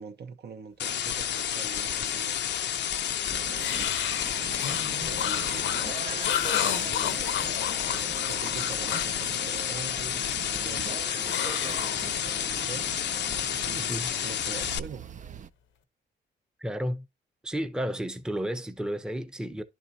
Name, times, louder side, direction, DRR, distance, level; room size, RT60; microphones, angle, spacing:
voice 1, 0.0-2.4 4.7-5.7 6.6-7.7 8.2-10.2 10.6-12.9 13.6-15.1, right 5 dB, 60° right, 0.9 m, -44 dB
sound 1, 0.8-14.8, left 10 dB, 65° left, 0.6 m, -30 dB
sound 2, 3.3-15.5, right 7 dB, 40° right, 0.4 m, -42 dB
sound 3, 3.6-9.2 11.3-12.4, left 9 dB, 85° left, 0.9 m, -32 dB
voice 2, 16.6-17.1 17.4-19.6, equal, 5° right, 0.7 m, -32 dB
11.0 x 4.3 x 2.7 m
cardioid pair, 90°, 19 cm